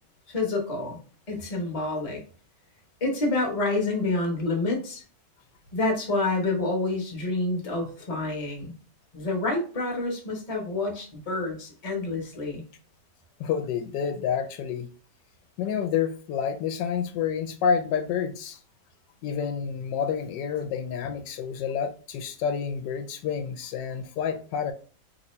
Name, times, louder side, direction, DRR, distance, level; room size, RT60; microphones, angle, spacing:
voice 1, 0.3-1.0 1.3-2.2 3.0-5.0 5.7-8.7 9.1-12.6, left 2 dB, 25° left, 0.9 m, -28 dB
voice 2, 13.4-14.9 15.6-18.6 19.2-24.7, left 7 dB, 85° left, 1.2 m, -29 dB
2.9 x 2.7 x 4.2 m
omnidirectional pair, 1.9 m